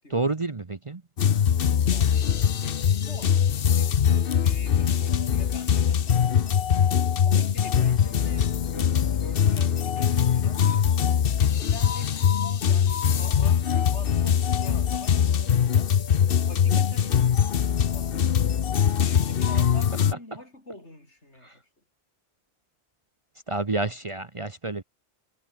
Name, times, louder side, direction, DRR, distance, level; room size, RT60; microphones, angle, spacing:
voice 1, 0.1-1.0 19.5-19.7 21.4-21.6 23.5-24.8, right 3 dB, 30° right, 1.0 m, -29 dB
sound 1, 1.2-20.1, left 8 dB, 55° left, 1.0 m, -22 dB
voice 2, 1.9-3.4 3.8-6.4 7.2-16.0 16.4-17.6 17.9-18.7 19.0-21.6, left 1 dB, 80° left, 8.3 m, -46 dB
omnidirectional pair, 1.2 m